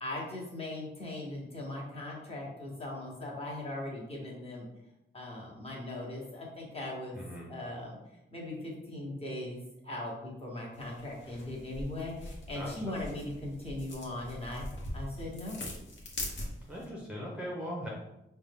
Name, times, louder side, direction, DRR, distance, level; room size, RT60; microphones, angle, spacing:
voice 1, 0.0-4.6 5.1-7.2 7.5-8.0 8.3-14.7 14.9-15.7, left 1 dB, 30° left, -4 dB, 1.1 m, -39 dB
voice 2, 7.2-7.5 12.5-13.0 16.7-17.9, equal, 5° right, -4 dB, 0.6 m, -39 dB
sound 1, 10.7-16.9, left 1 dB, 60° left, 1.0 m, -42 dB
5.2 x 2.2 x 3.4 m, 0.89 s
wide cardioid pair, 175°, 21 cm